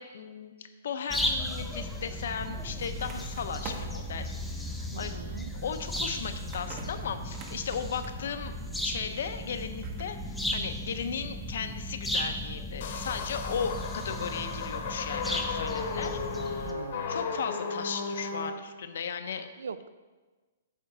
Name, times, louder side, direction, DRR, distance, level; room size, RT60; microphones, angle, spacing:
voice 1, 0.0-5.2 5.5-8.5 8.8-16.7 17.1-19.5, left 6 dB, 60° left, 9 dB, 0.7 m, -36 dB
sound 1, 1.1-16.7, left 1 dB, ahead, 0.5 m, -35 dB
sound 2, 2.5-10.0, right 3 dB, 25° right, 0.9 m, -47 dB
voice 2, 4.9-5.5 16.6-17.2 19.6-19.9, right 6 dB, 90° right, 14 dB, 0.4 m, -41 dB
sound 3, 12.8-18.5, left 4 dB, 45° left, 1.0 m, -35 dB
8.8 x 3.8 x 6.6 m, 1.3 s
hypercardioid pair, 165°, 0 cm